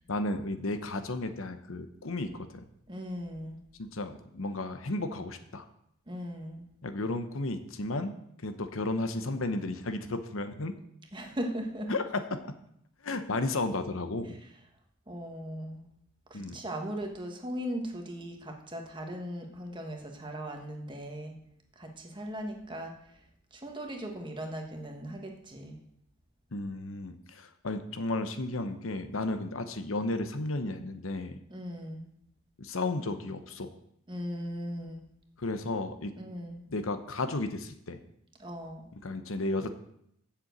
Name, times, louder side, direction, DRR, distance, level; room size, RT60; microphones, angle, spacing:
voice 1, 0.1-2.6 3.8-5.6 6.8-8.2 8.4-10.7 11.9-12.5 13.0-14.4 16.3-16.6 26.5-31.4 32.6-33.7 35.4-36.1 36.7-38.0 39.0-39.7, left 2 dB, 75° left, 9 dB, 0.9 m, -33 dB
voice 2, 2.9-3.6 6.1-6.7 11.1-11.9 14.3-14.4 15.1-15.9 16.3-21.4 21.8-22.9 23.5-25.8 31.5-32.0 34.1-35.0 36.2-36.6 38.4-38.9, equal, 20° right, 3 dB, 1.4 m, -38 dB
7.6 x 7.0 x 7.9 m, 0.74 s
head